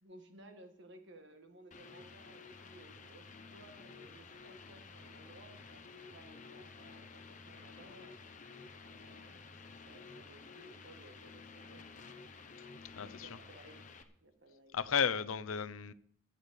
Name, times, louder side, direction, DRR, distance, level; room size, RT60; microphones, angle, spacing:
voice 1, 0.0-8.5 8.8-12.0 13.0-13.9 14.2-14.8, right 1 dB, 60° right, 1.8 m, -58 dB
sound 1, 1.7-14.0, left 4 dB, 40° left, 1.0 m, -52 dB
voice 2, 13.0-13.3 14.7-15.9, left 7 dB, 90° left, 0.7 m, -33 dB
13.0 x 8.6 x 6.9 m
head